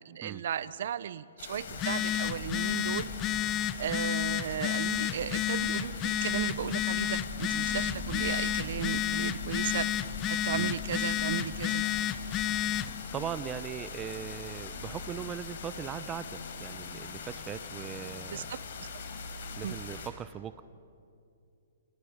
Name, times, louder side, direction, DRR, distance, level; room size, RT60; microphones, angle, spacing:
voice 1, 0.0-3.1 3.8-9.9 10.3-11.8 18.3-18.9 19.6-19.8, right 9 dB, 60° right, 16 dB, 1.1 m, -35 dB
sound 1, 1.4-20.1, left 4 dB, 65° left, 5.0 m, -42 dB
Telephone, 1.7-13.0, left 11 dB, 25° left, 0.9 m, -31 dB
voice 2, 13.1-18.5 19.6-20.6, right 9 dB, 20° right, 13 dB, 0.8 m, -39 dB
29.5 x 29.0 x 6.6 m, 2.6 s
hypercardioid pair, 150°, 0 cm